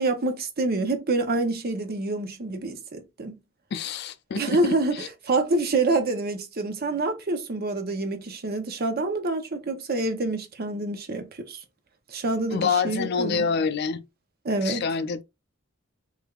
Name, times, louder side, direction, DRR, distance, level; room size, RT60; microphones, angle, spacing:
voice 1, 0.0-3.4 4.3-11.6 12.1-13.5 14.4-14.9, right 2 dB, 50° right, 0.8 m, -27 dB
voice 2, 3.7-4.6 12.5-14.0 14.6-15.2, left 5 dB, 55° left, 0.4 m, -26 dB
3.4 x 3.3 x 2.3 m
head